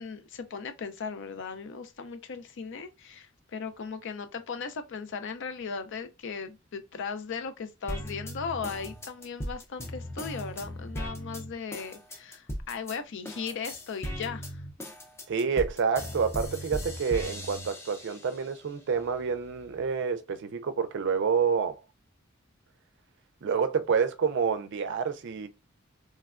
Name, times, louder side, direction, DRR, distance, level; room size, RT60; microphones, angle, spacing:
voice 1, 0.0-14.6, left 5 dB, 65° left, 0.5 m, -37 dB
sound 1, 7.9-13.0 13.2-18.4 18.9-19.9, equal, 15° left, 0.5 m, -38 dB
voice 2, 15.3-21.8 23.4-25.5, right 6 dB, 60° right, 0.4 m, -28 dB
3.2 x 2.2 x 2.3 m
head